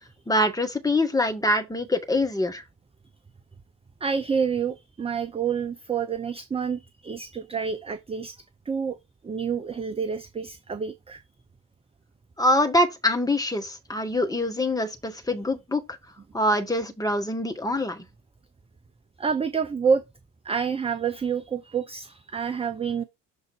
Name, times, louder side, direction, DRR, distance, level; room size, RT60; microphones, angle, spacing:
voice 1, 0.3-2.6 12.4-15.8 16.3-18.0, left 1 dB, 10° left, 1.3 m, -24 dB
voice 2, 4.0-8.4 8.7-9.0 9.2-11.2 19.2-20.0 20.4-23.0, right 6 dB, 15° right, 0.6 m, -28 dB
6.7 x 3.8 x 3.9 m
figure-of-eight pair, 55°, 46 cm